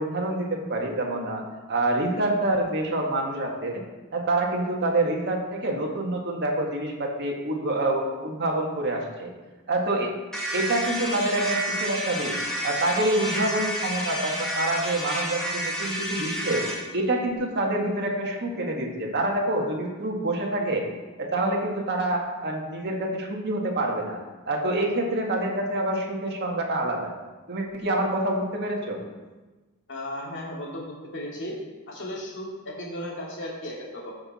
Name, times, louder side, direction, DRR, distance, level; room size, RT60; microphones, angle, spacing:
voice 1, 0.0-1.4 1.7-3.8 4.1-9.3 9.7-10.1 10.5-12.3 12.6-16.6 16.9-20.8 21.2-24.2 24.4-27.1 27.5-29.0, right 1 dB, 50° right, -1 dB, 1.8 m, -27 dB
sound 1, 10.3-16.8, right 1 dB, 5° left, 2.2 m, -30 dB
voice 2, 29.9-31.5 31.9-34.1, left 1 dB, 55° left, -4 dB, 2.7 m, -35 dB
15.0 x 5.9 x 4.3 m, 1.2 s
head